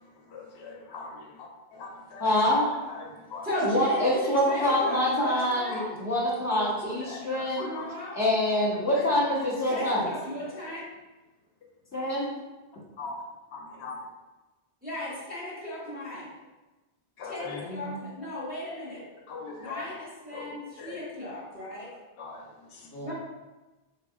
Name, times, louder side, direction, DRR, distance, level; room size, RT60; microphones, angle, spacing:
voice 1, 0.3-2.3 2.6-3.5 5.7-5.8 6.5-6.7 7.0-7.8 8.9-9.0 13.0-13.2 13.5-14.0 17.2-17.6 19.3-19.9 20.3-21.0 22.2-22.9, left 4 dB, 85° left, 1 dB, 0.9 m, -41 dB
voice 2, 2.2-2.6 3.6-7.6 8.1-10.1 11.9-12.3 17.5-18.0 22.9-23.1, left 1 dB, 15° left, -7 dB, 1.2 m, -26 dB
voice 3, 3.4-5.9 7.6-8.2 9.7-10.8 14.8-16.2 17.2-19.1 19.6-21.9 23.0-23.1, left 1 dB, 10° right, -9 dB, 1.4 m, -36 dB
3.9 x 3.4 x 2.3 m, 1.1 s
omnidirectional pair, 1.1 m